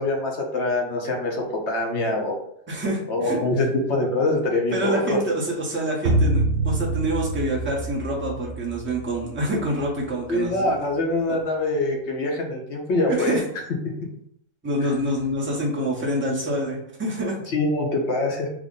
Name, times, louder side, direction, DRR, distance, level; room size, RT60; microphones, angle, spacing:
voice 1, 0.0-2.3 3.1-5.2 10.3-13.4 17.5-18.5, left 2 dB, 60° left, 1 dB, 0.9 m, -24 dB
voice 2, 2.7-3.4 4.7-10.7 11.3-11.4 13.1-13.4 14.6-17.4, right 1 dB, 10° right, -4 dB, 0.6 m, -26 dB
sound 1, 6.1-10.5, right 2 dB, 70° right, 1.1 m, -26 dB
3.5 x 2.1 x 3.7 m, 0.72 s
omnidirectional pair, 1.4 m